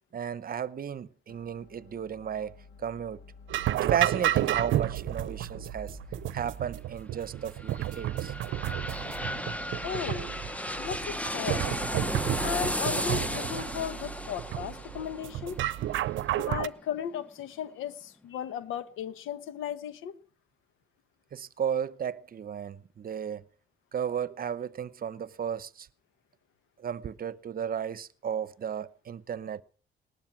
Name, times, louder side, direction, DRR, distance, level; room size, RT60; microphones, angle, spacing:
voice 1, 0.1-3.2 3.9-6.0 6.3-8.3 21.3-23.4 23.9-25.9 26.8-29.6, right 8 dB, 45° right, 0.9 m, -34 dB
sound 1, 1.3-8.4, left 5 dB, 55° left, 2.2 m, -51 dB
sound 2, 3.5-16.7, right 13 dB, 75° right, 0.7 m, -31 dB
sound 3, 7.3-17.0 17.4-17.5, left 1 dB, 5° left, 1.0 m, -35 dB
voice 2, 9.8-10.3 10.8-11.7 12.4-15.6 16.5-20.1, left 9 dB, 90° left, 1.2 m, -35 dB
19.0 x 12.0 x 6.0 m
cardioid pair, 90°, 20 cm